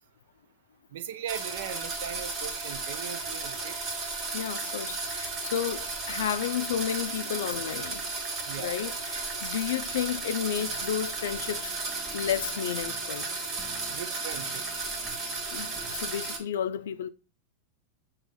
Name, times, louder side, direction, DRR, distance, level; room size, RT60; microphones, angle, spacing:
voice 1, 0.9-3.8 8.5-8.8 13.9-14.9, right 9 dB, 70° right, 0.5 m, -39 dB
sound 1, 1.3-16.4, right 3 dB, 35° right, 1.3 m, -34 dB
voice 2, 4.3-8.0 8.6-11.7 12.1-13.3 15.5-17.1, left 9 dB, 80° left, 0.3 m, -32 dB
Fire, 10.6-16.4, equal, ahead, 0.9 m, -52 dB
4.8 x 2.9 x 3.7 m
hypercardioid pair, 125°, 0 cm